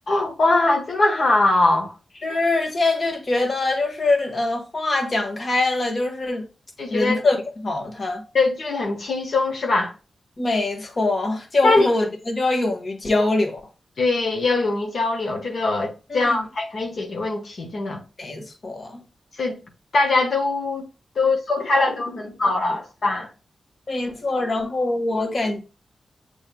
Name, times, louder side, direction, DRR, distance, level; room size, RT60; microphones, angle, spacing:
voice 1, 0.1-1.9 6.8-7.2 8.3-9.9 11.6-11.9 14.0-18.0 19.4-19.6 19.9-20.9 21.1-23.3, left 2 dB, 65° left, 1.2 m, -22 dB
voice 2, 2.2-6.4 6.9-7.4 7.6-8.2 10.4-13.6 16.1-16.4 18.2-19.0 23.9-25.6, left 2 dB, 45° left, 1.4 m, -23 dB
7.1 x 3.3 x 2.2 m
cardioid pair, 70°, 0 cm